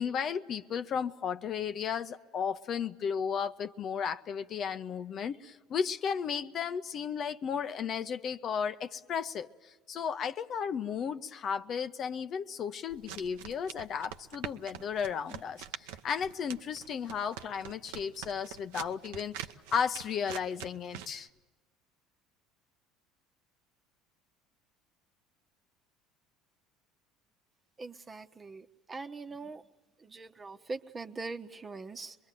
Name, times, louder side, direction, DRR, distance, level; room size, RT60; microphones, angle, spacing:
voice 1, 0.0-19.3 19.7-21.3, left 7 dB, 45° left, 0.8 m, -34 dB
sound 1, 12.9-21.2, right 10 dB, 75° right, 0.9 m, -45 dB
voice 2, 27.8-29.6 30.0-32.2, right 3 dB, 25° right, 1.2 m, -42 dB
25.0 x 22.0 x 9.3 m
hypercardioid pair, 70°, 0 cm